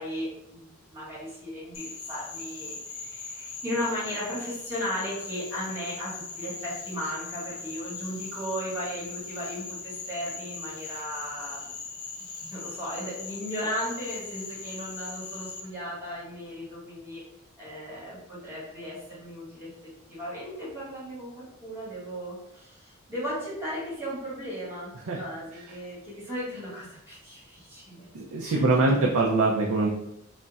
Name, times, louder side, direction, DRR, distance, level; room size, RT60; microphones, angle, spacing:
voice 1, 0.0-11.7 12.4-17.2 17.6-28.1 28.4-29.1, equal, 10° right, -8 dB, 1.3 m, -36 dB
Frog, 1.7-15.6, left 4 dB, 80° left, 0.5 m, -40 dB
voice 2, 28.1-29.9, right 3 dB, 75° right, -1 dB, 0.4 m, -24 dB
3.9 x 2.1 x 2.3 m, 0.80 s
head